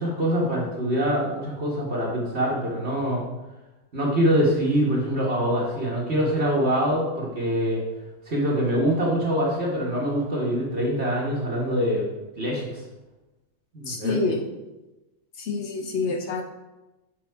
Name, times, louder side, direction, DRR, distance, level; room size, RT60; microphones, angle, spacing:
voice 1, 0.0-3.2 3.9-7.8 8.3-12.1 12.3-12.8 13.7-14.2, equal, 50° right, -4 dB, 1.5 m, -24 dB
voice 2, 13.9-14.4 15.4-16.4, left 4 dB, 60° left, 3 dB, 0.9 m, -27 dB
6.4 x 4.2 x 4.5 m, 1.0 s
omnidirectional pair, 1.5 m